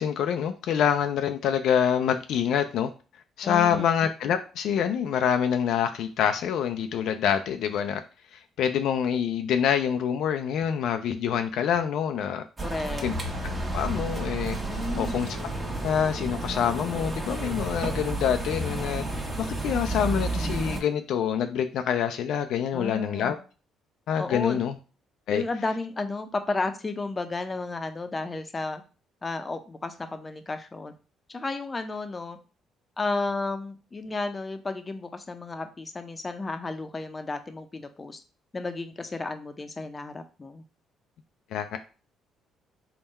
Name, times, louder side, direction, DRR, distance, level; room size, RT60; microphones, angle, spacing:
voice 1, 0.0-2.9 3.4-8.0 8.6-12.4 13.0-13.1 13.7-14.6 14.9-15.3 15.8-23.4 24.1-24.7 25.3-25.4 41.5-41.8, left 8 dB, 75° left, 7 dB, 0.4 m, -26 dB
voice 2, 3.4-3.9 12.6-13.1 14.7-15.3 22.7-23.4 24.2-24.6 25.3-28.8 29.2-30.9 31.3-32.4 33.0-38.2 38.5-40.6, left 3 dB, 25° left, 8 dB, 0.6 m, -33 dB
sound 1, 12.6-20.8, right 2 dB, 25° right, 1.1 m, -31 dB
3.6 x 2.3 x 4.1 m, 0.34 s
supercardioid pair, 75°, 0 cm